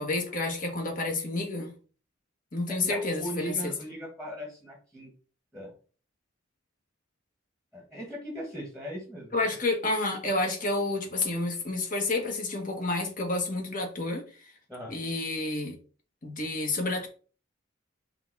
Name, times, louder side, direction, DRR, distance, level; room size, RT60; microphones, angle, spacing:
voice 1, 0.0-1.7 2.5-3.7 9.3-14.5 14.9-15.8 16.2-17.1, left 2 dB, 40° left, 2 dB, 1.7 m, -30 dB
voice 2, 2.7-5.1 5.5-5.7 7.7-9.4 14.7-14.9, equal, 5° left, 0 dB, 1.5 m, -39 dB
5.7 x 3.5 x 5.5 m, 0.39 s
head